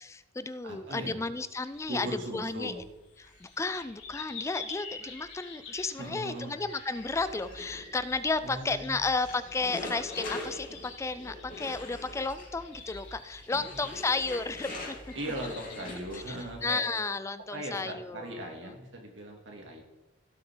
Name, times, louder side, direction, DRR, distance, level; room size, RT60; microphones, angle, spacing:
voice 1, 0.0-2.8 3.2-15.0 16.1-18.7, left 3 dB, 15° left, 14 dB, 0.3 m, -33 dB
voice 2, 0.6-1.2 1.9-2.8 6.0-6.6 8.4-9.0 13.5-13.6 15.1-16.8 17.5-19.8, right 1 dB, 80° right, 0 dB, 2.9 m, -39 dB
sound 1, 1.6-16.1, left 5 dB, 75° left, 2.8 m, -48 dB
sound 2, 6.9-16.7, left 2 dB, 50° left, 3.4 m, -43 dB
17.0 x 7.8 x 3.9 m, 1.0 s
head